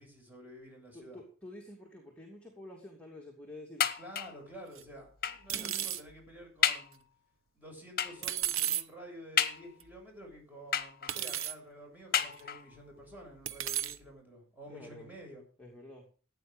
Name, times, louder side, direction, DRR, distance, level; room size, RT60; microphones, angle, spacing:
voice 1, 0.0-1.2 4.0-7.0 7.5-15.4, equal, 10° right, 0 dB, 6.9 m, -50 dB
voice 2, 0.9-3.9 5.5-5.9 14.7-15.1 15.6-16.1, left 1 dB, 5° left, -2 dB, 2.7 m, -49 dB
sound 1, 3.8-4.5 5.2-5.5 6.1-6.2 6.6-7.0 8.0-8.3 9.4-10.0 10.7-11.3 12.1-12.8 13.6-13.7 14.0-14.1, left 8 dB, 50° left, 1.2 m, -32 dB
sound 2, 4.8-4.9 5.5-6.0 8.2-8.8 9.8-9.9 11.1-11.5 12.4-12.5 13.5-14.0, right 10 dB, 90° right, 0.9 m, -33 dB
16.0 x 9.6 x 5.2 m, 0.39 s
head